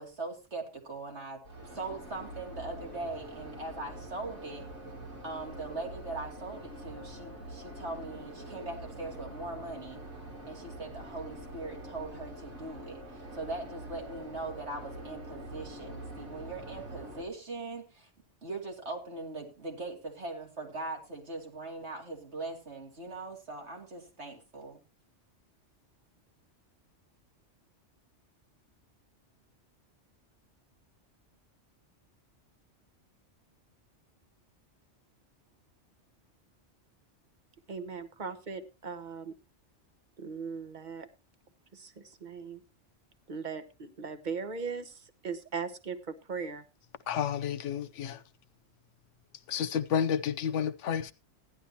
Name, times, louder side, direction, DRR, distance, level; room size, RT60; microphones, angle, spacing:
voice 1, 0.0-4.7 5.2-10.0 10.5-18.1 18.4-24.8, right 2 dB, 65° right, 2.9 m, -41 dB
sound 1, 1.4-17.2, right 1 dB, 90° right, 3.7 m, -45 dB
voice 2, 37.7-39.3 40.2-41.1 41.7-42.6 43.3-46.6, right 5 dB, 40° right, 1.2 m, -39 dB
voice 3, 47.1-48.2 49.5-51.1, left 8 dB, 80° left, 1.1 m, -30 dB
15.5 x 11.0 x 2.9 m
omnidirectional pair, 1.2 m